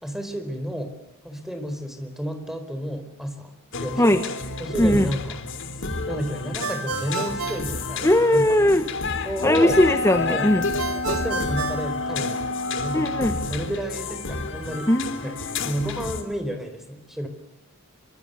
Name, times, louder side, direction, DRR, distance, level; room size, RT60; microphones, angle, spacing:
voice 1, 0.0-0.9 1.2-3.5 3.8-4.2 4.6-5.4 6.1-8.6 9.2-9.8 10.3-10.5 11.1-12.5 12.8-14.9 15.2-17.3, equal, ahead, 8 dB, 4.5 m, -31 dB
sound 1, 3.7-16.2, left 3 dB, 65° left, 3.3 m, -31 dB
voice 2, 4.8-5.1 8.0-8.9 9.4-10.7 12.9-13.3 14.9-15.6, left 1 dB, 15° left, 9 dB, 1.3 m, -19 dB
Ringtone, 6.6-8.5 10.8-12.7, right 6 dB, 90° right, 1.8 m, -32 dB
Wind instrument woodwind instrument, 9.4-13.7, left 3 dB, 80° left, 4.8 m, -30 dB
25.5 x 24.5 x 6.8 m, 0.84 s
head